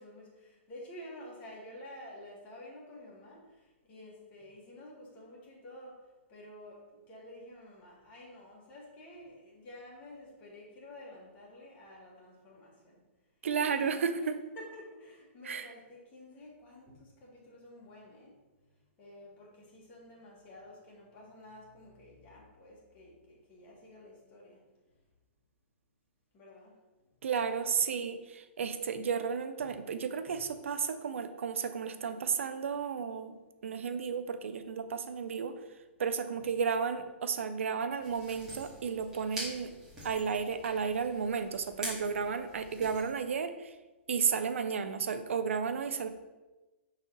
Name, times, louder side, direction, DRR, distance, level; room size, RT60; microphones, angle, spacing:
voice 1, 0.0-13.0 13.6-14.3 14.5-18.4 19.0-24.6 26.3-26.7 29.6-29.7 30.3-30.4, left 1 dB, 25° left, -4 dB, 1.7 m, -51 dB
voice 2, 13.4-14.4 15.5-15.7 27.2-33.4 33.6-35.6 36.0-39.7 40.0-43.7 44.1-46.1, right 6 dB, 85° right, 10 dB, 0.5 m, -33 dB
sound 1, 38.0-43.1, right 1 dB, 10° right, 1.8 m, -45 dB
6.1 x 4.1 x 3.9 m, 1.2 s
hypercardioid pair, 155°, 7 cm